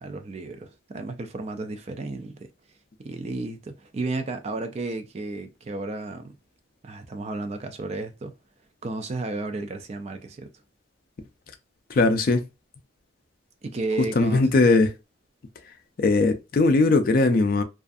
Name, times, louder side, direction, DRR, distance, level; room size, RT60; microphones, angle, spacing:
voice 1, 0.0-2.5 3.0-6.4 6.8-8.3 8.8-10.5 13.6-14.5, right 2 dB, 30° right, 0.3 m, -33 dB
voice 2, 11.9-12.4 14.2-14.9 16.0-17.6, left 3 dB, 45° left, 0.4 m, -19 dB
2.4 x 2.4 x 2.5 m
head